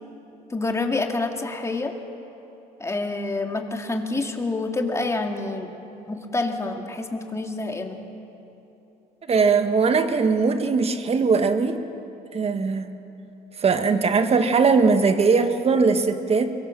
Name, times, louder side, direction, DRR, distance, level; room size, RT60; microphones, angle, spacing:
voice 1, 0.5-1.9 2.8-5.7 6.1-8.0, left 2 dB, 15° left, 3 dB, 2.4 m, -27 dB
voice 2, 9.3-11.8 12.3-12.9 13.6-16.5, right 4 dB, 35° right, 8 dB, 1.6 m, -20 dB
24.0 x 23.5 x 7.4 m, 2.9 s
cardioid pair, 110°, 17 cm